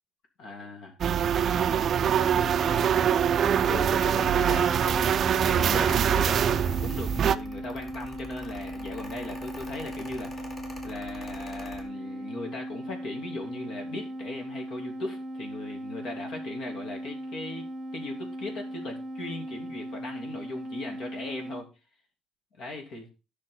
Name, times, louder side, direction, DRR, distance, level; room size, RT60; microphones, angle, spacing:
voice 1, 0.4-1.0 1.3-3.2 3.7-5.1 5.5-10.4 10.8-21.7 22.6-23.1, left 2 dB, 50° left, 3 dB, 3.0 m, -39 dB
sound 1, 1.0-7.4, right 9 dB, 40° right, 0.4 m, -24 dB
sound 2, 2.1-21.7, right 1 dB, 20° right, 1.1 m, -38 dB
Mechanical fan, 3.9-11.8, left 1 dB, 25° left, 2.0 m, -44 dB
11.5 x 6.5 x 3.9 m, 0.29 s
cardioid pair, 165°, 0 cm